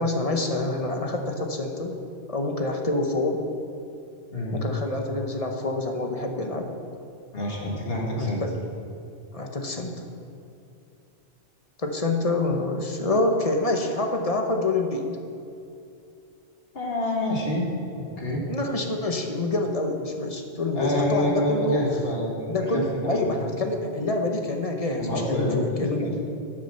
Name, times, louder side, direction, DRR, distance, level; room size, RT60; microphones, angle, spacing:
voice 1, 0.0-2.0 2.3-3.4 4.5-6.7 8.1-8.5 9.3-10.0 11.8-15.0 18.5-21.8 22.5-26.1, left 2 dB, 35° left, 3 dB, 1.0 m, -26 dB
voice 2, 7.3-8.4 16.7-18.4 20.8-23.3 25.0-26.2, equal, 65° left, -2 dB, 2.1 m, -27 dB
10.0 x 7.4 x 6.5 m, 2.6 s
omnidirectional pair, 1.1 m